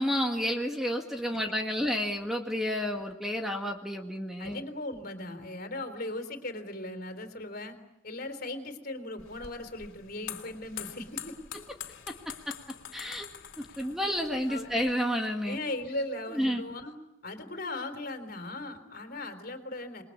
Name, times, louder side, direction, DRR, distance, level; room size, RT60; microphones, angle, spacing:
voice 1, 0.0-4.6 12.5-12.6 12.9-13.3 13.6-15.6 16.3-16.6, equal, ahead, 2 dB, 1.9 m, -30 dB
voice 2, 4.4-7.8 8.0-11.4 14.5-14.8 15.5-16.9 17.2-20.0, left 2 dB, 50° left, 8 dB, 3.7 m, -38 dB
sound 1, 9.2-14.9, left 9 dB, 70° left, 2.9 m, -45 dB
28.0 x 22.0 x 8.5 m, 0.88 s
head